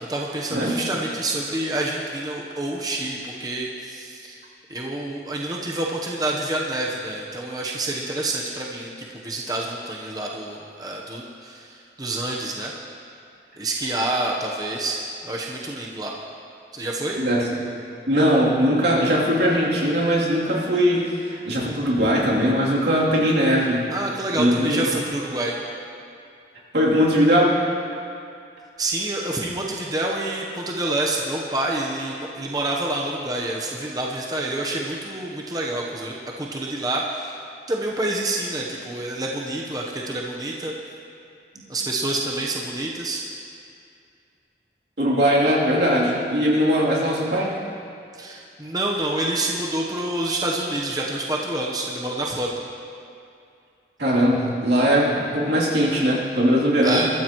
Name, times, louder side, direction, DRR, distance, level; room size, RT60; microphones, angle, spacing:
voice 1, 0.1-4.4 4.7-8.9 9.2-12.7 13.6-16.1 16.7-17.2 23.9-25.5 28.8-37.4 37.7-40.7 41.7-43.2 48.1-52.5 56.8-57.1, right 2 dB, 20° right, -2 dB, 1.0 m, -27 dB
voice 2, 17.2-17.6 18.1-23.8 24.3-24.9 26.7-27.7 45.0-47.6 54.0-57.0, equal, 80° right, -5 dB, 3.1 m, -20 dB
21.5 x 14.0 x 3.1 m, 2.5 s
head